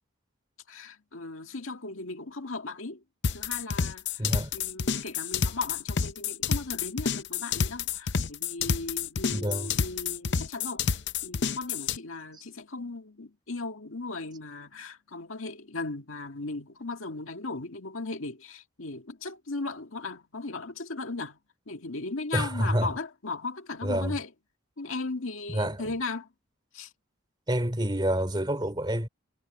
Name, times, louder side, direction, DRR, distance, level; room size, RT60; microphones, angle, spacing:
voice 1, 0.7-21.4 21.7-24.3 24.8-26.3 26.7-26.9, left 3 dB, 75° left, 1.9 m, -37 dB
sound 1, 3.2-12.0, left 6 dB, 55° left, 0.6 m, -29 dB
voice 2, 4.2-4.5 9.3-9.7 22.3-22.9 23.8-24.2 25.5-25.8 27.5-29.1, right 1 dB, 20° right, 2.9 m, -28 dB
head